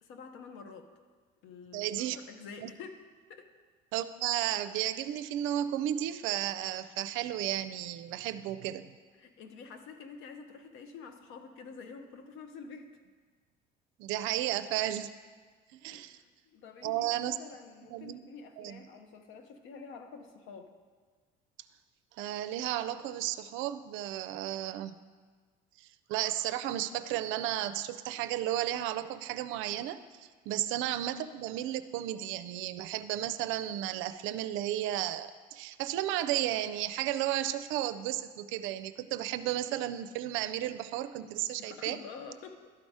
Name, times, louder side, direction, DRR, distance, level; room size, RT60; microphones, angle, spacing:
voice 1, 0.0-0.9 1.4-3.0 3.3-3.5 9.2-12.9 15.9-20.7 30.5-30.6 41.6-42.7, left 5 dB, 70° left, 6 dB, 0.9 m, -48 dB
voice 2, 1.7-2.2 2.6-2.7 3.9-8.9 14.0-15.1 15.7-16.2 16.8-17.4 17.9-18.2 18.6-18.8 22.2-25.0 25.8-30.2 30.5-42.0, right 13 dB, 70° right, 12 dB, 0.5 m, -33 dB
12.0 x 4.2 x 4.7 m, 1.5 s
supercardioid pair, 85°, 21 cm